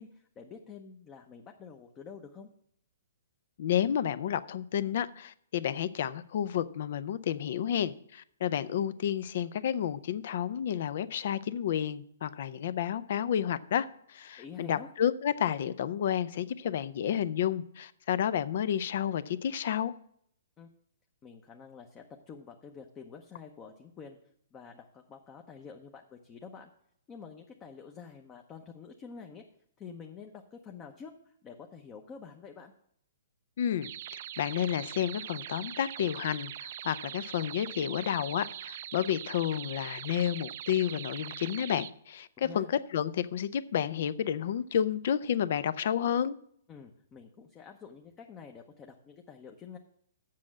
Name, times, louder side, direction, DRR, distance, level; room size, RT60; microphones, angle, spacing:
voice 1, 0.0-2.5 14.4-14.9 20.6-20.7 21.2-24.2 24.5-26.7 27.1-29.4 29.8-32.7 42.4-42.7 46.7-49.8, left 6 dB, 20° left, 3 dB, 0.8 m, -48 dB
voice 2, 3.6-19.9 33.6-46.4, left 9 dB, 60° left, 16 dB, 0.5 m, -31 dB
sound 1, 33.8-41.9, right 11 dB, 55° right, 0.4 m, -42 dB
7.6 x 6.2 x 7.3 m, 0.68 s
hypercardioid pair, 140°, 0 cm